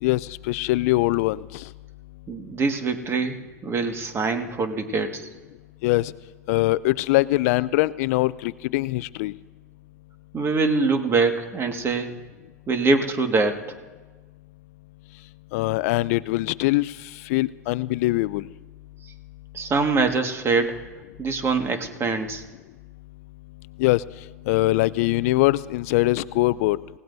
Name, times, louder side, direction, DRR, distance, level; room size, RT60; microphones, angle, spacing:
voice 1, 0.0-1.7 5.8-6.1 6.5-9.3 15.5-18.5 23.8-24.0 24.5-26.8, left 19 dB, 60° left, 19 dB, 0.4 m, -22 dB
voice 2, 2.3-5.3 10.3-12.1 12.7-13.6 19.5-20.8 21.2-22.4, right 4 dB, 25° right, 6 dB, 1.8 m, -24 dB
28.0 x 17.0 x 2.7 m, 1.3 s
hypercardioid pair, 95°, 9 cm